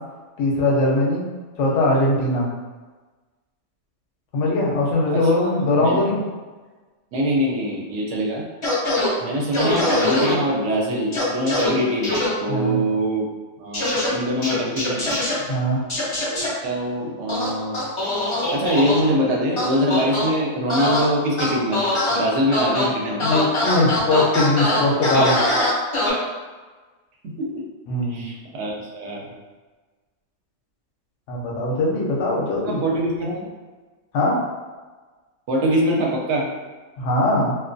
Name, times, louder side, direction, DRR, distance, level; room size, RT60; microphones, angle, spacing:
voice 1, 0.4-1.2 1.6-2.5 4.3-6.2 12.5-12.8 15.5-15.8 23.2-25.4 27.9-28.2 31.3-32.8 34.1-34.4 37.0-37.6, left 1 dB, 75° left, -2 dB, 0.9 m, -20 dB
voice 2, 7.1-8.4 9.2-13.3 13.6-15.2 16.3-17.8 18.5-23.3 27.2-27.6 28.1-29.3 32.6-33.5 35.5-36.5, equal, 70° right, -2 dB, 0.9 m, -23 dB
sound 1, 8.6-9.1 9.5-10.3 11.1-11.7 12.0-12.3 13.7-14.1 14.4-15.3 15.9-16.5 17.3-19.0 19.6-20.3 20.7-21.0 21.4-22.2 22.5-22.9 23.2-26.1, left 1 dB, 35° left, 0.5 m, -22 dB
2.3 x 2.2 x 2.5 m, 1.3 s
omnidirectional pair, 1.3 m